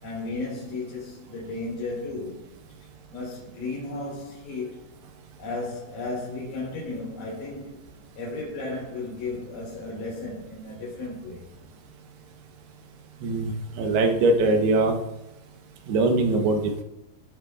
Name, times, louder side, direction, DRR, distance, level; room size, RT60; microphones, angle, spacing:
voice 1, 0.0-2.5 3.1-4.9 5.4-7.8 8.1-11.5, left 3 dB, 50° left, 5.4 m, -34 dB
voice 2, 13.8-15.0 15.9-16.8, right 2 dB, 75° right, 3.1 m, -22 dB
16.0 x 11.0 x 2.5 m
omnidirectional pair, 4.7 m